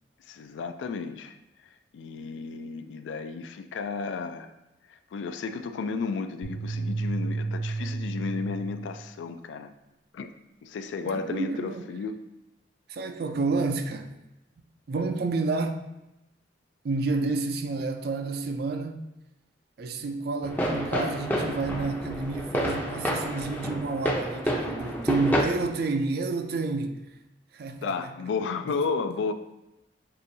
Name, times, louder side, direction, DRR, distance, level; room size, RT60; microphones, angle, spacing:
voice 1, 0.3-1.3 1.9-4.5 5.1-9.7 10.1-10.3 10.6-12.2 27.8-29.3, left 4 dB, 80° left, 0.3 m, -33 dB
sound 1, 6.4-8.9, right 3 dB, 55° left, 1.2 m, -31 dB
voice 2, 11.1-11.8 12.9-14.1 14.9-15.8 16.8-19.0 19.8-27.0 27.5-28.0 28.7-28.9, right 3 dB, 55° right, 0.4 m, -29 dB
sound 2, 20.4-25.4, equal, 10° left, 0.5 m, -29 dB
6.7 x 2.6 x 2.7 m
head